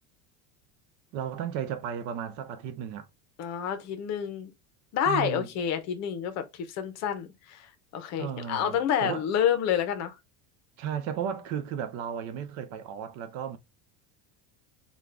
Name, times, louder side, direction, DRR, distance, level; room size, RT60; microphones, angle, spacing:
voice 1, 1.1-3.1 5.1-5.5 8.2-9.2 10.8-13.6, right 8 dB, 40° right, 0.4 m, -34 dB
voice 2, 3.4-4.5 4.9-10.1, left 8 dB, 40° left, 0.7 m, -29 dB
3.7 x 2.4 x 3.2 m
cardioid pair, 175°, 40 cm